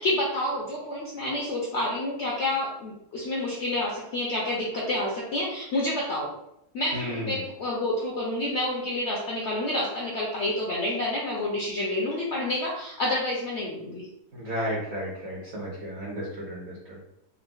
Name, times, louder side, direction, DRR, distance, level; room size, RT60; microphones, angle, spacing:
voice 1, 0.0-6.3 6.7-14.1, left 1 dB, 70° left, -3 dB, 0.6 m, -29 dB
voice 2, 6.9-7.4 14.3-17.0, equal, 55° right, -4 dB, 0.9 m, -33 dB
3.7 x 2.2 x 2.3 m, 0.81 s
omnidirectional pair, 1.7 m